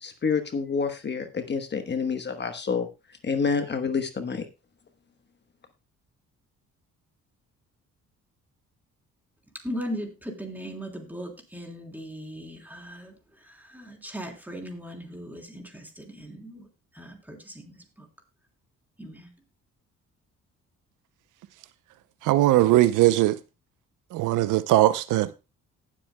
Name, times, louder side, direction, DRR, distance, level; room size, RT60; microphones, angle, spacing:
voice 1, 0.0-2.9 3.2-4.4, left 5 dB, 35° left, 1.1 m, -28 dB
voice 2, 9.6-13.1 13.4-16.7 16.9-18.1 19.0-19.3, equal, 5° right, 3.3 m, -38 dB
voice 3, 22.2-23.4 24.1-25.3, right 15 dB, 90° right, 0.6 m, -20 dB
18.5 x 7.6 x 2.2 m
cardioid pair, 90°, 30 cm